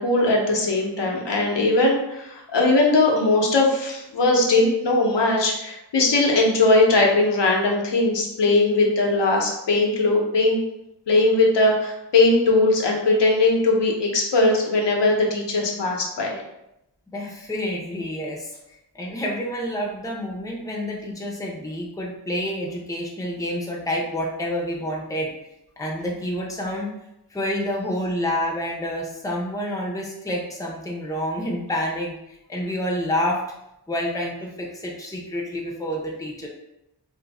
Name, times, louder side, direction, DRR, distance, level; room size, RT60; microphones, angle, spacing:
voice 1, 0.0-10.6 11.1-16.4, left 2 dB, 90° left, -1 dB, 0.8 m, -20 dB
voice 2, 17.1-18.5 18.9-25.3 25.8-26.9 27.3-32.1 32.5-33.4 33.9-36.5, equal, 10° left, -2 dB, 0.6 m, -28 dB
2.6 x 2.5 x 4.0 m, 0.86 s
wide cardioid pair, 115°, 41 cm